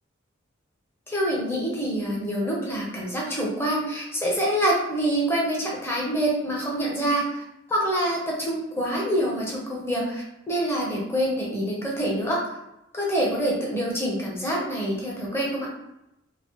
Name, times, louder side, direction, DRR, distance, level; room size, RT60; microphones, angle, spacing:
voice 1, 1.1-7.4 7.7-12.4 12.9-15.7, right 1 dB, 15° left, -4 dB, 0.8 m, -26 dB
3.0 x 2.6 x 3.0 m, 0.87 s
head